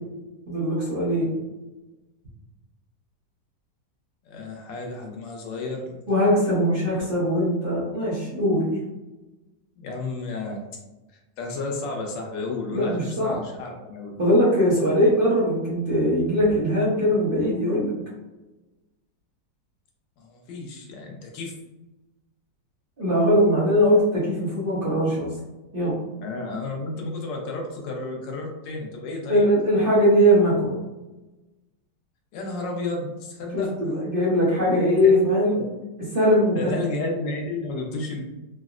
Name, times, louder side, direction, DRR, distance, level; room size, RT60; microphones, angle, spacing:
voice 1, 0.5-1.3 6.1-8.7 12.7-13.4 14.2-17.9 23.0-25.3 25.7-26.0 29.3-30.7 33.5-35.6 36.1-36.8, equal, 40° right, -9 dB, 0.8 m, -21 dB
voice 2, 4.2-6.0 9.8-10.6 11.4-14.1 20.2-21.5 26.2-29.5 32.3-33.8 35.0-35.1 36.6-38.2, left 3 dB, 90° left, 1 dB, 1.4 m, -32 dB
3.8 x 2.1 x 2.4 m, 1.1 s
omnidirectional pair, 1.9 m